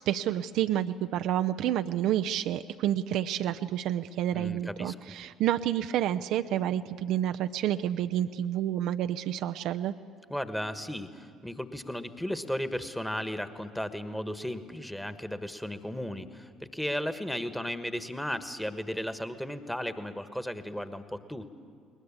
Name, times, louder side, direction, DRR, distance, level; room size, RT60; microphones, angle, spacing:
voice 1, 0.0-9.9, right 11 dB, 60° right, 9 dB, 0.5 m, -29 dB
voice 2, 4.3-4.9 10.3-21.5, equal, 5° left, 11 dB, 1.4 m, -35 dB
21.0 x 20.5 x 8.5 m, 2.3 s
figure-of-eight pair, 50°, 0 cm